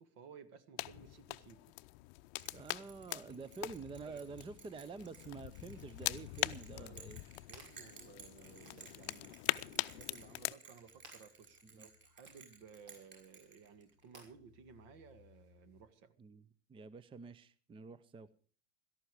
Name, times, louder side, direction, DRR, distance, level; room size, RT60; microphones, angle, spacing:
voice 1, 0.0-1.7 4.1-4.3 6.4-7.0 7.5-16.1, right 6 dB, 55° right, 13 dB, 1.9 m, -58 dB
sound 1, 0.8-10.5, left 22 dB, 55° left, 0.7 m, -42 dB
Bell, 2.4-14.1, right 5 dB, 35° right, 7.3 m, -57 dB
voice 2, 2.5-7.2 11.7-11.9 16.2-18.3, right 4 dB, 15° right, 18 dB, 0.7 m, -48 dB
sound 2, 6.8-15.8, equal, 80° right, 6.1 m, -64 dB
17.0 x 13.5 x 4.9 m, 0.41 s
hypercardioid pair, 85°, 33 cm